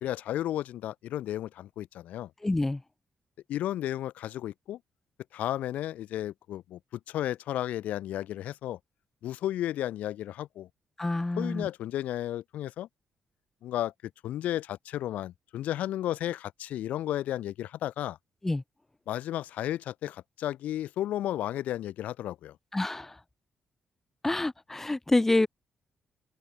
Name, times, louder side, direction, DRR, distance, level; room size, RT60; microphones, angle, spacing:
voice 1, 0.0-2.3 3.5-4.8 5.3-8.8 9.2-10.7 11.4-12.9 13.6-13.9 14.2-18.2 19.1-22.6, left 12 dB, 90° left, 1.3 m, -33 dB
voice 2, 2.4-2.8 11.0-11.7 18.4-18.6 22.7-23.1 24.2-25.5, left 2 dB, 15° left, 1.4 m, -27 dB
cardioid pair, 120°, 3 cm